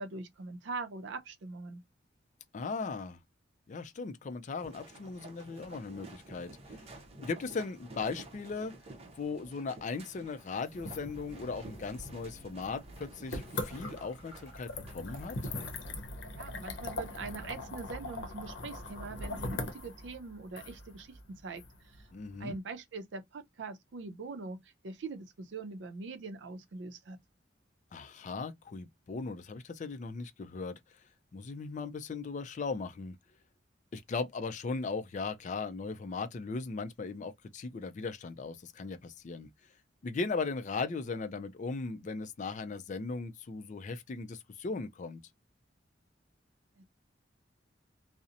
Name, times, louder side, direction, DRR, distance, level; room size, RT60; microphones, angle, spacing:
voice 1, 0.0-1.8 16.3-22.0 22.4-27.2 46.8-46.9, right 3 dB, 75° right, 0.5 m, -42 dB
voice 2, 2.5-3.2 3.7-6.8 7.2-8.7 9.2-15.4 22.1-22.6 27.9-30.7 31.3-33.2 33.9-39.5 40.0-45.2, left 4 dB, 40° left, 0.4 m, -38 dB
sound 1, 4.6-15.8, right 2 dB, 35° right, 0.7 m, -51 dB
sound 2, 10.6-22.5, left 2 dB, 80° left, 0.7 m, -42 dB
2.7 x 2.0 x 2.4 m
head